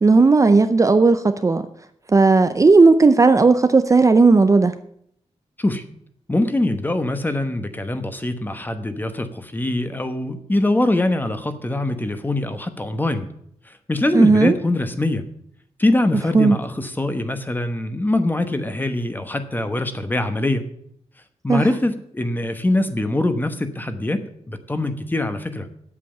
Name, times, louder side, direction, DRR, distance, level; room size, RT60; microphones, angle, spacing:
voice 1, 0.0-1.6 2.1-4.7 14.1-14.5 16.3-16.6 21.5-21.6, right 3 dB, 25° right, 9 dB, 0.5 m, -14 dB
voice 2, 6.3-13.3 13.7-15.3 15.8-20.7 21.4-25.7, left 1 dB, 15° left, 9 dB, 1.1 m, -23 dB
8.4 x 7.6 x 8.7 m, 0.70 s
wide cardioid pair, 145°, 12 cm